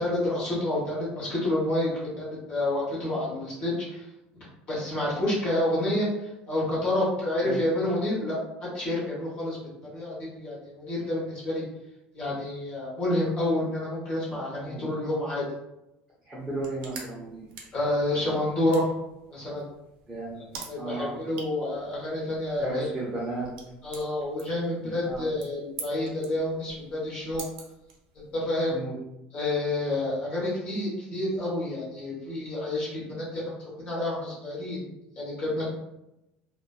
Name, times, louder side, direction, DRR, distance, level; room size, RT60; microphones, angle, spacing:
voice 1, 0.0-4.0 4.7-9.6 9.9-11.6 12.1-15.4 17.7-18.9 19.3-19.7 20.7-22.9 23.8-27.4 28.3-28.8 29.3-34.8 35.2-35.6, left 1 dB, 30° left, -7 dB, 0.9 m, -29 dB
voice 2, 16.2-17.5 20.1-20.4 20.8-21.1 22.6-23.5 25.1-25.2 28.7-29.0, right 2 dB, 10° right, -8 dB, 0.5 m, -34 dB
sound 1, 16.4-28.5, right 5 dB, 60° right, 0.5 m, -47 dB
2.5 x 2.1 x 2.3 m, 0.89 s
cardioid pair, 180°, 4 cm